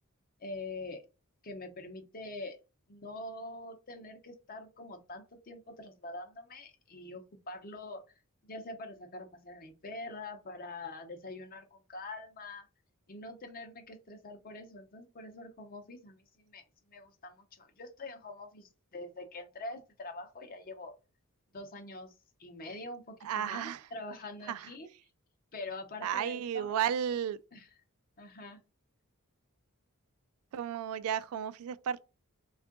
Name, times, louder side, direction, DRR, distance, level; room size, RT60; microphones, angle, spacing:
voice 1, 0.4-1.0 1.4-2.6 2.9-8.0 8.4-12.7 13.1-20.9 21.5-22.1 22.4-24.9 25.5-26.8 27.5-27.7 28.2-28.6, left 2 dB, 40° left, 0.7 m, -44 dB
voice 2, 23.2-23.8 24.5-24.7 26.0-27.4 30.5-32.0, right 9 dB, 75° right, 0.3 m, -33 dB
3.5 x 2.4 x 3.6 m
head